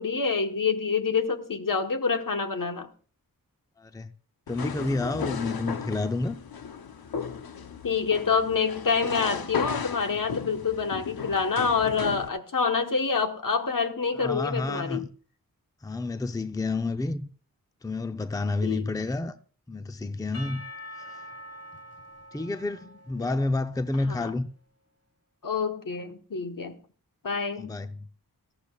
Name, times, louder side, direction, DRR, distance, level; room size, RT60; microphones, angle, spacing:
voice 1, 0.0-2.9 7.8-15.1 18.6-18.9 23.2-23.4 24.1-24.3 25.4-26.8 27.2-27.7, left 5 dB, 65° left, 1.3 m, -27 dB
voice 2, 3.8-4.1 4.5-6.4 14.2-15.1 15.8-17.3 17.8-19.4 19.7-20.6 22.3-24.5 27.6-28.1, left 2 dB, 10° left, 0.6 m, -29 dB
sound 1, 4.5-12.3, left 6 dB, 90° left, 0.8 m, -35 dB
Percussion / Church bell, 20.3-24.3, left 1 dB, 45° left, 1.7 m, -45 dB
18.0 x 13.5 x 2.4 m
wide cardioid pair, 65°, 36 cm